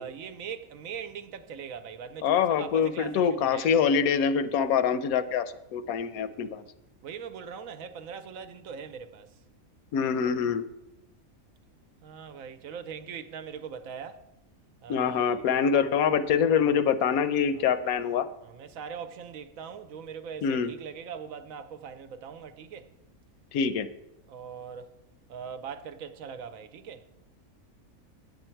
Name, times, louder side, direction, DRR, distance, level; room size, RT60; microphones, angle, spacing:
voice 1, 0.0-3.8 6.3-6.5 7.0-9.4 12.0-14.3 14.8-15.6 17.5-17.7 18.4-22.9 24.3-25.0 25.3-27.2, right 7 dB, 70° right, 1.0 m, -41 dB
voice 2, 2.2-5.5 5.7-6.6 9.9-10.7 14.9-18.3 20.4-20.7 23.5-23.9, left 7 dB, 80° left, 1.0 m, -25 dB
9.4 x 7.7 x 4.4 m
omnidirectional pair, 1.5 m